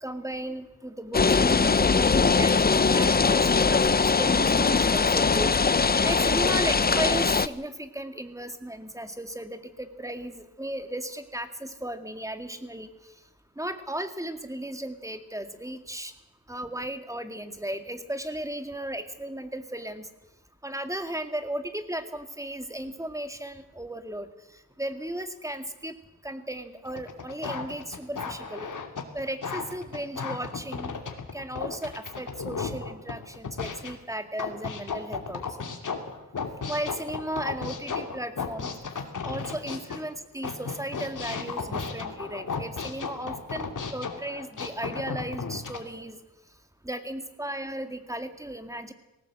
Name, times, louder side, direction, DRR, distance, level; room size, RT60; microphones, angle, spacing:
voice 1, 0.0-5.5 6.0-12.9 13.6-16.1 16.5-20.0 20.6-24.3 24.8-25.9 26.2-28.7 29.1-30.9 31.3-35.4 36.7-38.7 39.3-46.2 46.8-48.9, right 1 dB, 10° right, 8 dB, 2.1 m, -35 dB
sound 1, 1.1-7.5, left 4 dB, 30° left, 0.7 m, -21 dB
sound 2, 26.9-33.9 34.4-40.0 40.4-45.8, left 5 dB, 65° left, 2.8 m, -34 dB
20.0 x 18.0 x 7.8 m, 0.94 s
cardioid pair, 85°, 34 cm